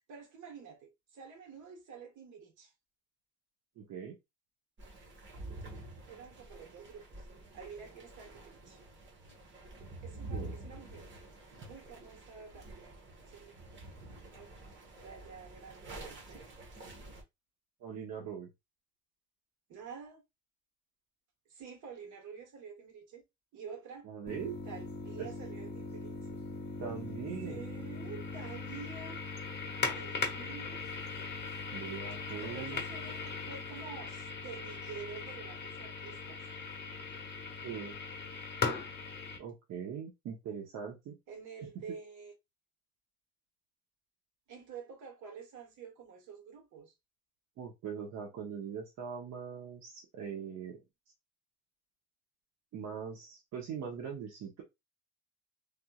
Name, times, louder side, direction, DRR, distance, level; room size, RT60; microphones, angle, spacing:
voice 1, 0.1-2.7 6.1-7.3 7.5-8.8 10.0-11.1 11.6-13.6 14.3-14.5 15.0-16.4 19.7-20.2 21.5-23.2 23.5-24.1 24.6-26.4 27.4-29.2 29.9-30.9 32.4-36.4 41.3-42.3 44.5-46.9, right 6 dB, 80° right, 1.6 m, -49 dB
voice 2, 3.8-4.2 10.3-10.5 17.8-18.5 24.0-24.6 25.2-25.3 26.8-27.6 31.7-32.8 37.6-38.0 39.4-41.2 41.6-41.7 47.6-50.8 52.7-54.6, right 7 dB, 65° right, 1.0 m, -41 dB
sound 1, 4.8-17.2, right 2 dB, 40° right, 1.3 m, -48 dB
sound 2, 24.3-39.4, left 4 dB, 35° left, 1.2 m, -39 dB
3.4 x 3.0 x 2.4 m
cardioid pair, 125°, 30 cm